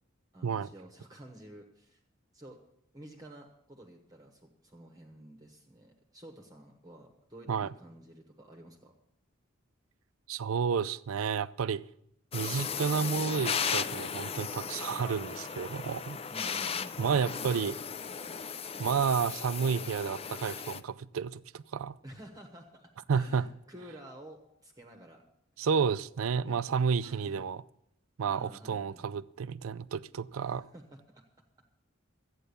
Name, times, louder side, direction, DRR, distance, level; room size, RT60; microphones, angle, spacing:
voice 1, 0.3-2.0 2.3-2.6 2.9-9.0 16.3-17.0 22.0-25.2 25.6-25.7 26.3-26.7 27.0-27.4 28.3-29.1 30.4-31.2, right 1 dB, 20° right, 1.2 m, -51 dB
voice 2, 10.3-11.8 12.3-16.2 17.0-17.8 18.8-22.0 23.1-23.4 25.6-27.6 28.2-30.7, right 6 dB, 85° right, 0.4 m, -31 dB
sound 1, 12.3-20.8, left 6 dB, 30° left, 0.4 m, -36 dB
13.5 x 9.0 x 6.9 m
head